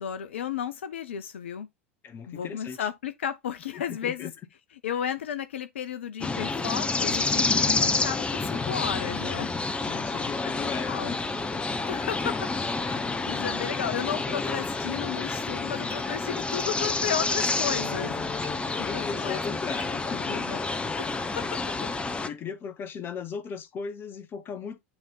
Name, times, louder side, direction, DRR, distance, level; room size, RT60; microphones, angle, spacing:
voice 1, 0.0-1.7 2.3-4.3 4.8-9.5 10.9-11.1 11.9-12.4 12.8-18.1 18.8-19.4 20.2-20.6 21.0-21.6, left 8 dB, 70° left, 0.6 m, -33 dB
voice 2, 2.0-2.9 3.7-4.3 9.8-11.2 17.8-18.4 18.6-20.4 22.2-24.8, left 6 dB, 35° left, 1.3 m, -37 dB
sound 1, 6.2-22.3, left 3 dB, 15° left, 1.2 m, -29 dB
sound 2, 11.2-11.3 11.5-11.6 11.9-12.0 12.2-12.3 14.6-14.9 15.9-16.2 16.5-17.6 18.4-18.5 19.7-19.9, left 1 dB, 80° right, 5.8 m, -48 dB
9.6 x 3.5 x 4.0 m
figure-of-eight pair, 80°, 7 cm